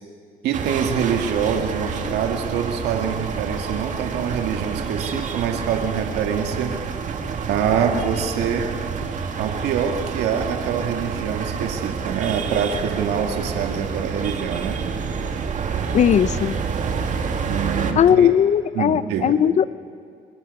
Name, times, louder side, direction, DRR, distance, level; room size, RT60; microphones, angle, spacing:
voice 1, 0.4-6.8 7.5-8.7 9.4-14.8 17.5-18.3 18.8-19.4, right 7 dB, 80° right, 4 dB, 1.9 m, -25 dB
sound 1, 0.5-17.9, right 6 dB, 50° right, 2.1 m, -28 dB
voice 2, 15.9-16.6 18.0-19.7, left 9 dB, 45° left, 17 dB, 0.7 m, -18 dB
25.5 x 22.0 x 5.4 m, 2.3 s
cardioid pair, 110°, 17 cm